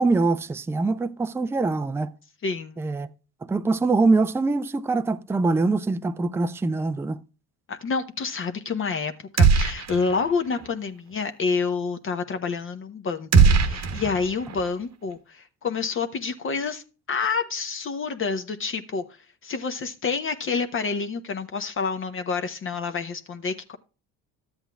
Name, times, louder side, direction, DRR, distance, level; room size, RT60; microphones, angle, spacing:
voice 1, 0.0-2.1 2.8-3.1 3.4-7.2, right 3 dB, 5° right, 0.4 m, -23 dB
voice 2, 2.4-2.8 7.7-13.3 13.6-19.0 19.4-23.8, left 5 dB, 35° left, 0.8 m, -28 dB
sound 1, 9.4-10.3 10.5-10.7 13.3-14.6, right 5 dB, 50° right, 1.0 m, -19 dB
12.5 x 8.0 x 2.3 m
supercardioid pair, 90°, 35 cm